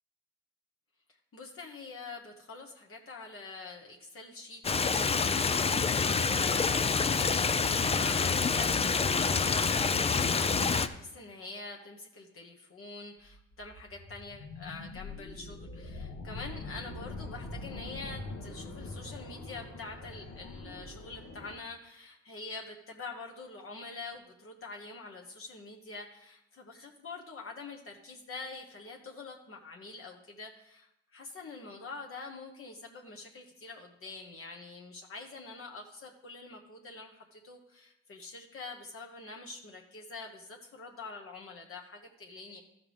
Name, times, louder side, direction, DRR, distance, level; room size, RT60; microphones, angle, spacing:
voice 1, 1.3-42.6, left 3 dB, 45° left, 0 dB, 1.2 m, -46 dB
Stream, 4.6-10.9, left 5 dB, 20° left, 0.4 m, -27 dB
sound 1, 13.2-21.5, left 2 dB, 65° left, 1.5 m, -43 dB
13.5 x 5.8 x 3.4 m, 0.84 s
cardioid pair, 90°, 30 cm